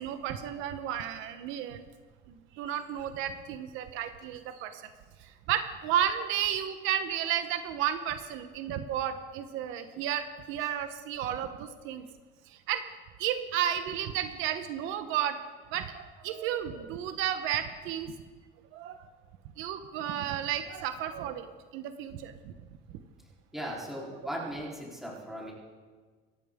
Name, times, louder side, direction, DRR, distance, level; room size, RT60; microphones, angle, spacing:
voice 1, 0.0-1.8 2.3-4.8 5.2-12.1 12.5-12.8 13.2-15.4 15.7-18.1 18.7-19.1 19.6-22.5 23.6-23.7, right 10 dB, 70° right, 8 dB, 1.1 m, -33 dB
voice 2, 23.5-25.5, equal, ahead, -5 dB, 3.8 m, -38 dB
25.5 x 13.5 x 3.7 m, 1.5 s
cardioid pair, 160°, 21 cm